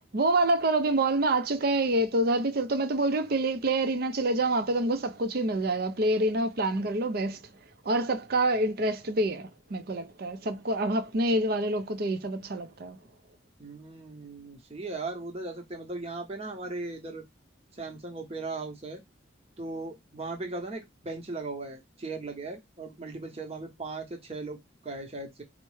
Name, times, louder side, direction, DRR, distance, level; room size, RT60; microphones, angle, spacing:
voice 1, 0.1-7.4 7.8-13.0, right 2 dB, 50° right, 0.5 m, -27 dB
voice 2, 13.6-17.2 17.7-19.0 19.6-25.4, right 3 dB, 30° right, 0.9 m, -38 dB
4.4 x 2.1 x 3.1 m
head